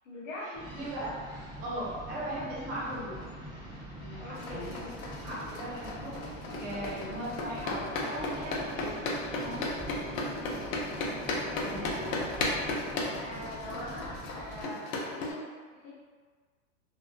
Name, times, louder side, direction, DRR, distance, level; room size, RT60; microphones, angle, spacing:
voice 1, 0.0-0.6 4.2-4.7 10.1-10.5 13.2-15.9, left 1 dB, 70° left, -6 dB, 1.1 m, -42 dB
sound 1, 0.5-14.6, right 1 dB, 10° left, 1.2 m, -44 dB
voice 2, 0.7-1.1 1.6-3.2 4.0-4.9 5.2-9.1 9.4-9.7 11.6-12.2, right 1 dB, 45° right, -8 dB, 1.1 m, -38 dB
sound 2, 4.4-15.3, left 2 dB, 90° left, 0.6 m, -35 dB
2.5 x 2.4 x 2.3 m, 1.5 s
supercardioid pair, 160°, 40 cm